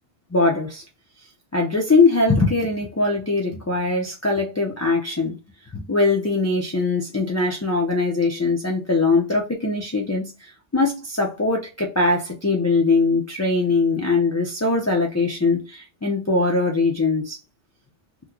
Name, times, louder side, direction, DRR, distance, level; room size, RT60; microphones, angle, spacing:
voice 1, 0.3-0.8 1.5-5.4 5.7-17.4, left 3 dB, 20° left, 0.4 m, -21 dB
3.0 x 2.2 x 3.6 m
omnidirectional pair, 1.2 m